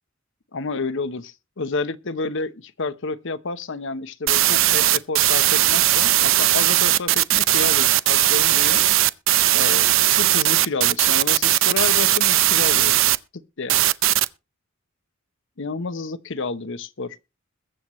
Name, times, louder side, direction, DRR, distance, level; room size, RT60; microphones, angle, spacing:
voice 1, 0.5-8.8 9.5-13.0 13.6-13.8 15.6-17.2, left 3 dB, 65° left, 0.9 m, -30 dB
sound 1, 4.3-13.2 13.7-14.3, right 15 dB, 70° right, 0.6 m, -18 dB
21.5 x 7.8 x 3.1 m
head